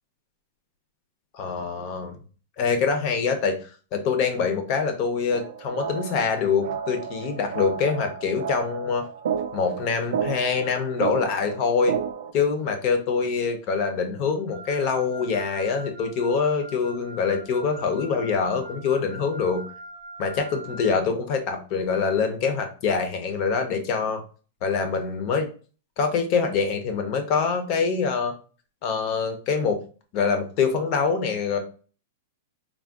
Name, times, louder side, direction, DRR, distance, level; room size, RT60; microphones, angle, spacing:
voice 1, 1.3-2.1 2.6-3.6 3.9-9.1 9.5-12.0 12.3-19.6 20.2-24.2 24.6-25.5 26.0-28.3 28.8-29.8 30.1-31.6, left 5 dB, 30° left, 6 dB, 0.5 m, -25 dB
sound 1, 5.3-12.3, right 7 dB, 75° right, 0.4 m, -32 dB
Wind instrument woodwind instrument, 14.5-21.0, right 1 dB, 30° right, 0.7 m, -43 dB
3.4 x 2.1 x 2.2 m, 0.37 s
supercardioid pair, 175°, 0 cm